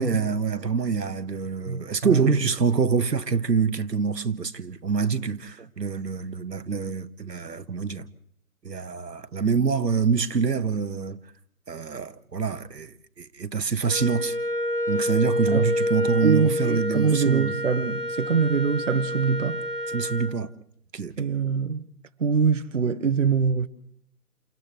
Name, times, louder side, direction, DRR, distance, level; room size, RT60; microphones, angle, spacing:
voice 1, 0.0-8.1 8.6-11.2 11.7-14.4 14.9-17.5 19.9-20.5 20.9-21.1, right 5 dB, 80° right, 1.4 m, -26 dB
voice 2, 1.6-2.4 5.6-5.7 15.5-15.7 16.2-19.6 21.2-21.8 22.2-23.7, right 5 dB, 50° right, 1.2 m, -24 dB
Wind instrument woodwind instrument, 13.9-20.4, left 1 dB, 80° left, 4.0 m, -28 dB
30.0 x 29.0 x 3.2 m
figure-of-eight pair, 165°, 49 cm